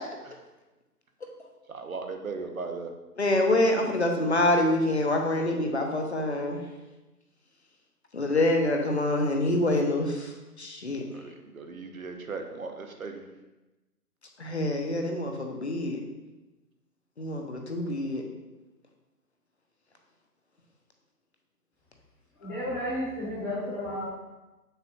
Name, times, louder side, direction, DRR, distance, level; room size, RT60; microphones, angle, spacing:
voice 1, 1.7-2.9 11.1-13.2, right 4 dB, 60° right, 5 dB, 0.8 m, -37 dB
voice 2, 3.2-6.6 8.1-11.0 14.4-16.0 17.2-18.2, left 1 dB, 45° left, 3 dB, 0.8 m, -26 dB
voice 3, 22.4-24.1, left 1 dB, 15° left, -10 dB, 1.5 m, -32 dB
6.6 x 6.1 x 2.3 m, 1.1 s
figure-of-eight pair, 150°, 48 cm